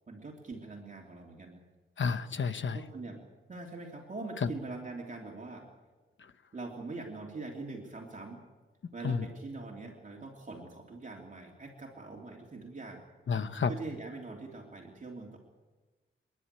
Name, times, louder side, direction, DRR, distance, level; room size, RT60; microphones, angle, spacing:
voice 1, 0.1-1.6 2.7-3.2 3.5-5.6 6.5-8.4 8.9-13.0 13.7-15.4, right 3 dB, 40° right, -1 dB, 3.1 m, -43 dB
voice 2, 2.0-2.8 4.4-4.5 9.0-9.2 13.3-13.7, left 5 dB, 65° left, 10 dB, 1.1 m, -30 dB
28.5 x 11.0 x 9.9 m, 1.3 s
wide cardioid pair, 120°, 21 cm